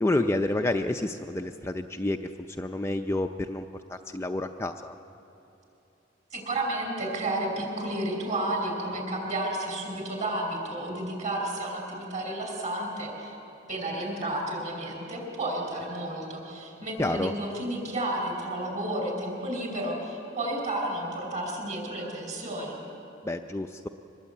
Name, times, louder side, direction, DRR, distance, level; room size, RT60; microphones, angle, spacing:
voice 1, 0.0-2.2 2.5-4.9 17.0-17.3 23.2-23.9, left 2 dB, 15° left, 5 dB, 0.5 m, -29 dB
voice 2, 6.3-13.4 13.7-22.8, right 1 dB, 40° right, 2 dB, 5.5 m, -32 dB
24.5 x 20.5 x 8.5 m, 2.9 s
head